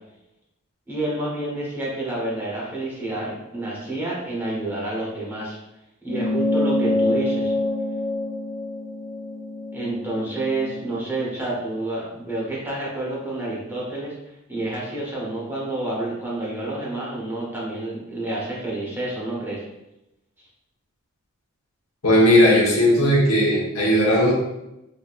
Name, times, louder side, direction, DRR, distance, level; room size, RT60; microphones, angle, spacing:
voice 1, 0.9-5.6 6.0-7.5 9.7-14.2 14.5-19.6, right 2 dB, 10° right, -5 dB, 0.9 m, -29 dB
sound 1, 6.1-10.9, left 2 dB, 25° left, 0.3 m, -26 dB
voice 2, 22.0-24.3, equal, 85° left, -4 dB, 1.1 m, -17 dB
3.9 x 2.7 x 2.4 m, 0.90 s
head